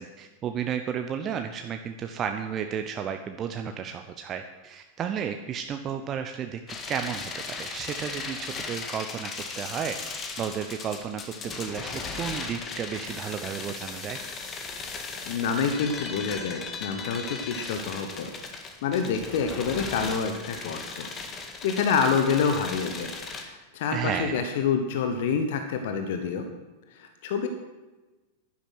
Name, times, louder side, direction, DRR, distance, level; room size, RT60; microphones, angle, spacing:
voice 1, 0.0-6.6 6.9-10.0 10.4-14.2 23.9-24.5, right 8 dB, 30° right, 6 dB, 0.7 m, -33 dB
sound 1, 6.7-23.4, left 4 dB, 25° left, 1.8 m, -37 dB
voice 2, 15.3-18.3 18.8-21.1 21.6-26.5 26.9-27.5, left 6 dB, 55° left, 6 dB, 1.1 m, -27 dB
11.5 x 10.5 x 6.4 m, 1.2 s
figure-of-eight pair, 90°, 0 cm